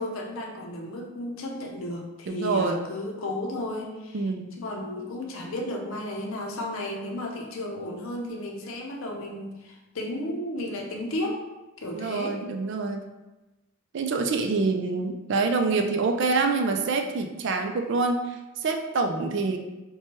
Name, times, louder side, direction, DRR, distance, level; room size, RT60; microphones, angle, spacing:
voice 1, 0.0-4.2 4.6-11.4 11.8-12.4, left 1 dB, 75° left, 1 dB, 0.6 m, -33 dB
voice 2, 2.3-2.9 4.1-4.5 11.9-13.0 13.9-19.6, right 3 dB, 60° right, 4 dB, 0.4 m, -26 dB
4.3 x 2.2 x 2.9 m, 1.1 s
head